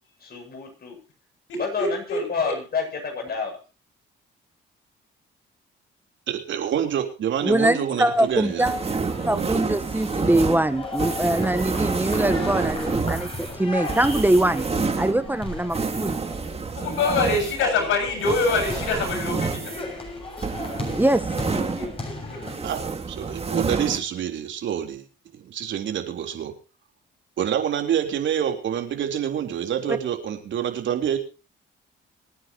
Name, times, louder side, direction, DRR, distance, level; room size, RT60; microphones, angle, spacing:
voice 1, 0.2-1.0 1.6-3.6 17.6-17.9 18.5-18.6, left 5 dB, 50° left, 3 dB, 7.8 m, -29 dB
voice 2, 1.5-2.3 16.8-19.7 21.8-22.4, left 3 dB, 85° left, 6 dB, 7.0 m, -25 dB
voice 3, 6.3-8.8 9.2-9.6 22.6-25.1 25.3-26.5 27.4-31.2, right 9 dB, 70° right, 4 dB, 3.8 m, -27 dB
voice 4, 7.4-14.7 15.0-16.2 21.0-21.3 29.9-30.0, right 1 dB, 10° right, 11 dB, 1.1 m, -23 dB
sound 1, 8.1-22.6, left 2 dB, 30° left, 7.2 m, -37 dB
sound 2, 8.6-22.1 22.4-24.0, right 4 dB, 30° right, 2.7 m, -29 dB
26.5 x 9.7 x 3.0 m, 0.33 s
cardioid pair, 90°, 20 cm